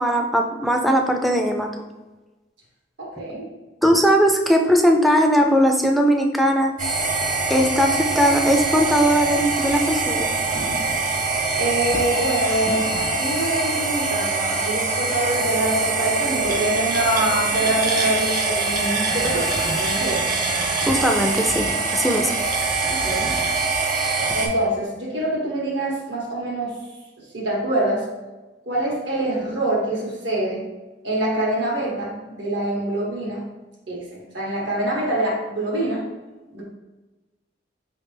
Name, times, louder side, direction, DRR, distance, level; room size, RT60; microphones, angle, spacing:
voice 1, 0.0-1.7 3.8-6.7 7.5-10.3 20.9-22.3, equal, ahead, 2 dB, 0.4 m, -19 dB
voice 2, 3.0-3.4 11.6-20.3 22.9-23.3 24.3-26.7 27.3-28.0 28.6-30.6 31.0-33.4 33.9-36.0 36.5-36.6, right 1 dB, 85° right, -3 dB, 1.5 m, -25 dB
sound 1, 6.8-24.5, right 3 dB, 45° right, 0.9 m, -23 dB
4.8 x 3.2 x 3.3 m, 1.1 s
head